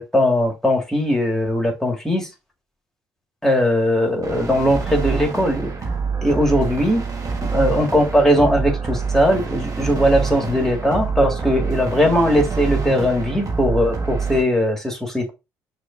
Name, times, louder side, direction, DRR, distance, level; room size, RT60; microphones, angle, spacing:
voice 1, 0.0-2.3 3.4-5.7 6.2-7.1 7.4-15.3, equal, 5° left, 2.1 m, -19 dB
sound 1, 4.2-14.4, right 5 dB, 40° right, 1.5 m, -26 dB
6.0 x 2.9 x 2.7 m
hypercardioid pair, 60°, 9 cm